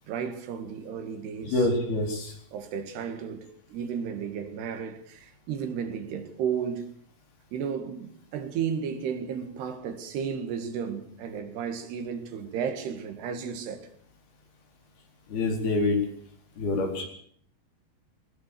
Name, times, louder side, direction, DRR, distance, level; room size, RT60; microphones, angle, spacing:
voice 1, 0.1-1.7 2.5-6.9 7.5-13.9 16.8-16.9, right 7 dB, 90° right, 4.0 m, -33 dB
voice 2, 1.5-2.3 15.3-16.0 16.6-17.0, left 2 dB, 70° left, 6.3 m, -26 dB
20.0 x 19.0 x 6.9 m
omnidirectional pair, 4.6 m